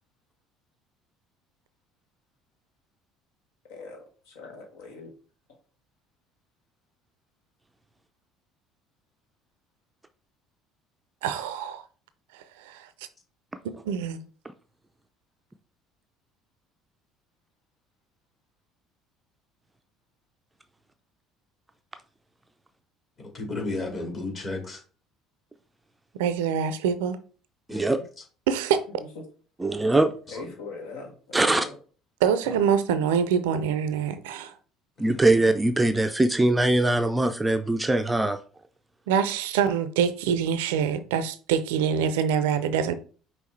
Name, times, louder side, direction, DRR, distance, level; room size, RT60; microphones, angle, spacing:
voice 1, 3.7-5.1 28.9-29.2 30.3-31.8, left 3 dB, 70° left, 1.3 m, -41 dB
voice 2, 11.2-11.8 12.7-12.9 13.8-14.2 26.2-27.2 28.5-28.8 32.2-34.5 39.1-42.9, right 7 dB, 70° right, 0.5 m, -25 dB
voice 3, 23.2-24.8 27.7-27.9 30.3-30.5 32.4-32.6 35.0-35.2, left 2 dB, 35° left, 2.5 m, -34 dB
voice 4, 29.6-30.1 31.3-31.7 35.0-38.4, right 2 dB, 15° right, 0.5 m, -22 dB
5.5 x 3.0 x 3.1 m
figure-of-eight pair, 60°, 0 cm